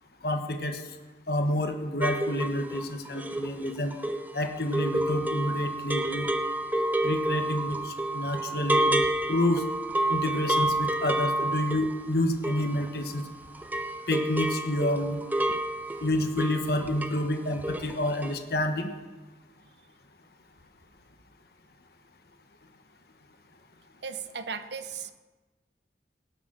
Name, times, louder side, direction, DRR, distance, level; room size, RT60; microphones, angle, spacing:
voice 1, 0.2-0.8 1.3-3.9 4.3-6.3 7.0-9.0 9.3-9.6 10.1-13.2 14.1-15.2 16.0-18.9, left 1 dB, 60° left, 5 dB, 1.2 m, -28 dB
sound 1, 2.0-13.3 13.5-17.3 17.5-18.0 18.2-18.3, right 1 dB, 10° right, 0.6 m, -29 dB
voice 2, 24.0-25.1, right 6 dB, 80° right, 11 dB, 0.8 m, -37 dB
17.5 x 7.1 x 6.2 m, 1.2 s
head